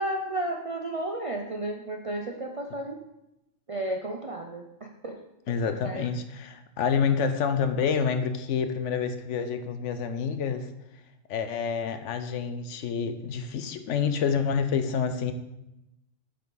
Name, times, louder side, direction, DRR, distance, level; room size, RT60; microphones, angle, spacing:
voice 1, 0.0-3.0 3.7-5.2 5.6-6.1, right 1 dB, 60° right, 2 dB, 0.3 m, -33 dB
voice 2, 5.5-10.7 11.3-15.3, left 6 dB, 70° left, 9 dB, 0.9 m, -28 dB
8.4 x 5.8 x 3.9 m, 0.91 s
omnidirectional pair, 1.4 m